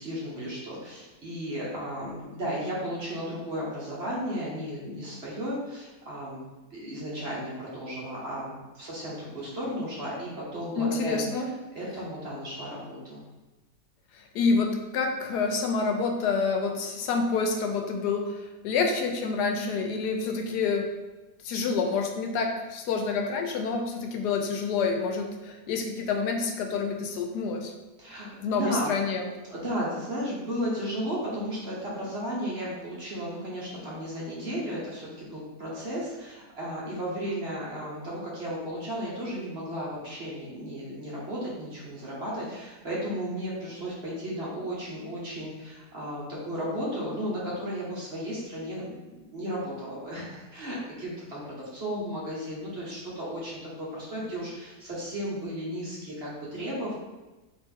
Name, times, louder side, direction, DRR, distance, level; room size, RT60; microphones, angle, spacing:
voice 1, 0.0-6.4 6.7-11.3 11.7-13.2 28.0-28.9 29.4-48.9 49.2-57.0, equal, 45° right, -6 dB, 1.2 m, -34 dB
voice 2, 10.8-11.5 14.1-20.9 21.4-27.7 28.4-29.3, left 4 dB, 80° left, 3 dB, 1.2 m, -28 dB
4.2 x 3.0 x 3.5 m, 1.1 s
omnidirectional pair, 1.8 m